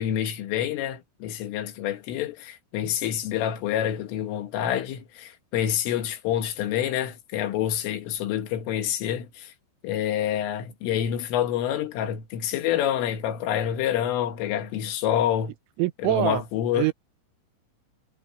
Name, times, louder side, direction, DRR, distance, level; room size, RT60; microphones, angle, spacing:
voice 1, 0.0-9.5 9.8-15.5 16.0-16.9, left 10 dB, 90° left, 4.4 m, -27 dB
voice 2, 15.8-16.4 16.7-16.9, right 17 dB, 85° right, 3.1 m, -24 dB
omnidirectional pair, 5.6 m